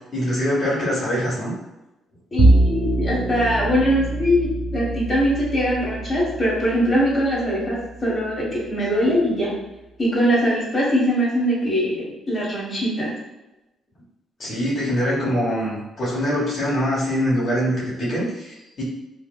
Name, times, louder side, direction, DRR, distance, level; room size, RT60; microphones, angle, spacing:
voice 1, 0.1-1.6 14.4-18.8, equal, 50° left, -7 dB, 1.3 m, -23 dB
voice 2, 2.3-9.5 10.0-13.1 14.8-14.9, equal, 20° left, -7 dB, 1.4 m, -22 dB
Bowed string instrument, 2.4-8.8, right 2 dB, 65° right, 0.4 m, -24 dB
3.4 x 2.8 x 2.4 m, 0.99 s
cardioid pair, 90°, 0 cm